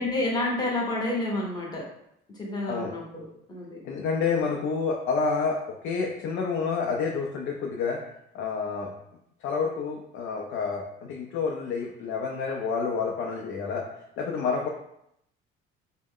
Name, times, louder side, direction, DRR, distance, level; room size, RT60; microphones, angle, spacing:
voice 1, 0.0-1.9 2.3-3.8, left 2 dB, 20° left, -3 dB, 0.9 m, -29 dB
voice 2, 3.8-8.0 8.3-8.9 9.4-13.8 14.2-14.7, left 5 dB, 65° left, 0 dB, 0.5 m, -29 dB
4.0 x 2.1 x 3.6 m, 0.76 s
cardioid pair, 165°, 21 cm